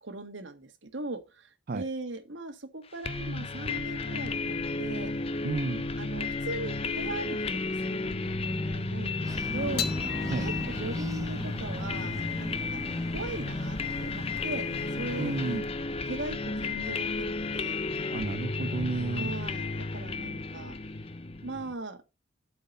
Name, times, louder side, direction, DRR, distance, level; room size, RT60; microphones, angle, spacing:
voice 1, 0.0-5.1 6.0-7.4 7.6-9.9 10.4-12.8 13.1-15.3 16.0-17.8 19.1-19.7 19.9-20.8 21.4-22.0, right 2 dB, 80° right, 1.5 m, -39 dB
sound 1, 3.0-21.7, left 3 dB, 30° left, 0.6 m, -33 dB
voice 2, 5.4-5.9 10.3-10.5 15.2-15.6 18.1-19.3, right 3 dB, 50° right, 0.5 m, -32 dB
sound 2, 9.2-15.6, right 1 dB, 20° right, 0.9 m, -41 dB
sound 3, 9.8-16.3, left 7 dB, 55° left, 0.9 m, -42 dB
7.8 x 5.6 x 5.3 m
head